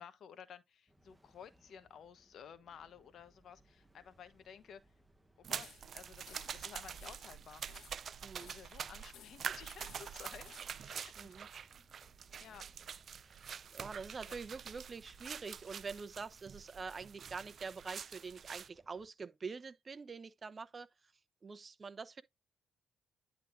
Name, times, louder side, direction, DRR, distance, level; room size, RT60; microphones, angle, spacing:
voice 1, 0.0-4.8 5.4-7.6 8.4-10.5 10.8-11.3 12.4-12.7 14.3-14.4, left 8 dB, 65° left, 1.1 m, -54 dB
sound 1, 0.9-19.1, equal, 5° right, 1.1 m, -69 dB
sound 2, 5.4-18.7, right 7 dB, 55° right, 0.4 m, -46 dB
sound 3, 5.5-6.0 6.3-6.7 7.0-7.3 7.7-8.8 9.1-9.5 9.8-10.9, left 9 dB, 80° left, 1.7 m, -59 dB
voice 2, 8.2-8.5 11.2-11.5 13.2-13.4 13.7-20.9 21.4-22.2, right 4 dB, 35° right, 0.8 m, -45 dB
10.5 x 3.8 x 2.6 m
cardioid pair, 90°, 0 cm